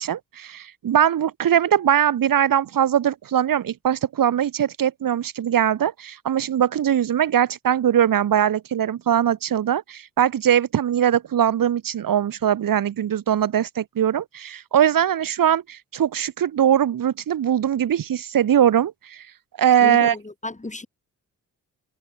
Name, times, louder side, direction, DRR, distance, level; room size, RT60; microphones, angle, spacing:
voice 1, 0.0-19.2 19.6-20.2, right 10 dB, 75° right, 2.8 m, -21 dB
voice 2, 19.8-20.9, left 2 dB, 20° left, 6.7 m, -33 dB
cardioid pair, 60°, 34 cm